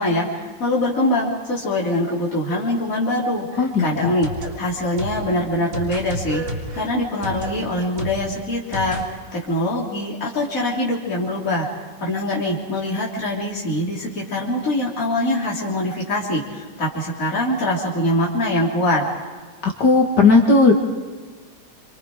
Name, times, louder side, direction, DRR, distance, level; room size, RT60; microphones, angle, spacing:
voice 1, 0.0-4.3 4.6-6.4 6.7-19.0, left 1 dB, 45° left, -5 dB, 3.9 m, -23 dB
voice 2, 3.6-4.1 19.6-20.7, left 3 dB, 65° left, 1 dB, 2.5 m, -15 dB
sound 1, 3.9-9.1, equal, 40° right, 3.8 m, -32 dB
29.5 x 26.5 x 5.0 m, 1.5 s
omnidirectional pair, 2.0 m